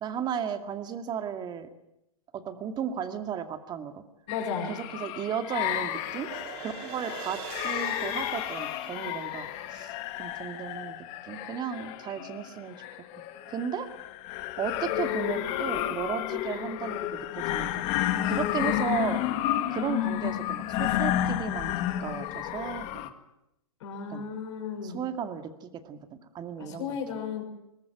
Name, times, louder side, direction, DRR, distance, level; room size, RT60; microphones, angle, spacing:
voice 1, 0.0-1.7 2.3-4.0 4.7-6.3 6.6-11.0 11.2-12.8 13.5-13.9 14.6-17.8 18.2-19.2 19.7-23.1 24.1-24.2 24.8-26.0 26.3-27.0, right 8 dB, 25° right, 8 dB, 2.2 m, -35 dB
voice 2, 4.3-4.7 23.8-25.0 26.6-27.4, left 6 dB, 55° left, 0 dB, 6.4 m, -34 dB
sound 1, 4.3-23.1, left 13 dB, 35° left, 1.9 m, -31 dB
sound 2, 4.9-11.1, right 8 dB, 45° right, 5.3 m, -45 dB
22.0 x 19.0 x 9.2 m, 0.85 s
hypercardioid pair, 125°, 19 cm